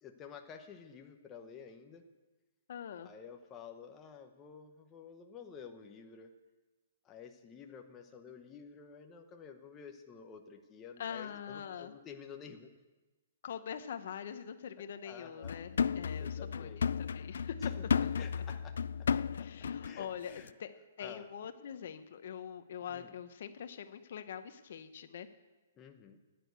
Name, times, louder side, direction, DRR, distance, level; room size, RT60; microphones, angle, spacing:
voice 1, 0.0-2.0 3.0-6.3 7.0-12.7 15.0-15.6 16.2-16.8 17.6-17.7 18.0-18.7 19.8-20.5 21.0-21.3 22.9-23.1 25.8-26.2, left 6 dB, 15° left, 4 dB, 0.9 m, -51 dB
voice 2, 2.7-3.1 11.0-11.9 13.4-17.7 19.3-20.7 21.0-25.3, left 8 dB, 60° left, 10 dB, 0.9 m, -44 dB
sound 1, 15.4-20.0 20.4-20.5, left 6 dB, 80° left, 0.3 m, -34 dB
11.0 x 9.5 x 8.1 m, 1.2 s
hypercardioid pair, 160°, 0 cm